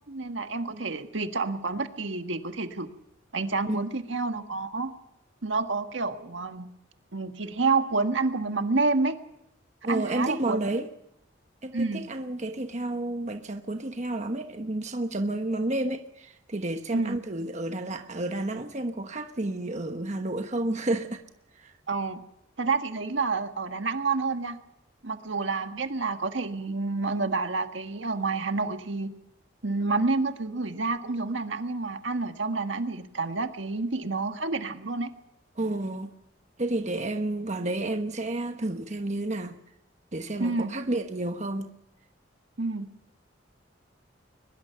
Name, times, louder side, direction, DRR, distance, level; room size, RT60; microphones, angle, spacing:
voice 1, 0.1-2.9 3.3-4.9 5.4-6.7 7.1-9.2 9.9-10.6 11.7-12.0 16.9-17.2 21.9-22.2 22.6-24.6 25.0-29.1 29.6-35.1 40.4-40.7 42.6-42.9, right 3 dB, 75° right, 1.7 m, -29 dB
voice 2, 9.8-10.9 11.6-21.2 21.6-21.7 35.6-36.1 36.6-39.6 40.1-41.7, right 2 dB, 35° right, 1.2 m, -31 dB
22.5 x 21.5 x 5.8 m
head